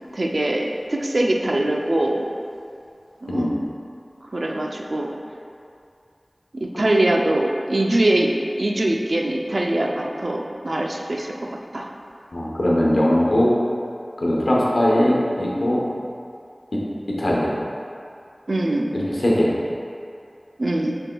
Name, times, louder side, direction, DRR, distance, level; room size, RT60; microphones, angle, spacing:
voice 1, 0.1-2.3 3.2-3.6 4.3-5.1 6.5-11.9 18.5-18.9 20.6-21.0, right 1 dB, 65° right, 0 dB, 0.4 m, -23 dB
voice 2, 12.3-13.5 14.2-15.8 16.7-16.8 17.2-17.5 18.9-19.5, left 1 dB, 80° left, -5 dB, 0.8 m, -20 dB
6.6 x 3.6 x 2.3 m, 2.5 s
wide cardioid pair, 50°, 0 cm